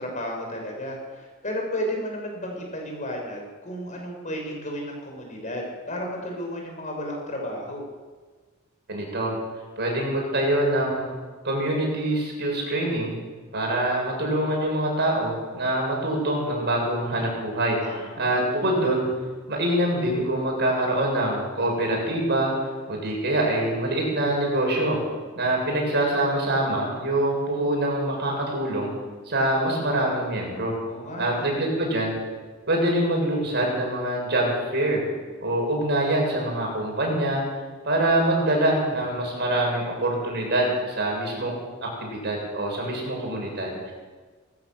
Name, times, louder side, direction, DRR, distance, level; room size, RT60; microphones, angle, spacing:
voice 1, 0.0-7.8 17.8-18.4 30.8-31.5, equal, 35° left, 1 dB, 6.3 m, -33 dB
voice 2, 8.9-9.3 9.8-11.1 11.4-13.2 13.5-19.1 19.5-22.5 22.9-25.0 25.3-28.9 29.3-30.7 31.2-32.2 32.7-35.0 35.4-37.4 37.8-41.5 42.0-43.9, right 1 dB, 50° right, -1 dB, 7.9 m, -25 dB
19.0 x 17.0 x 8.0 m, 1.4 s
head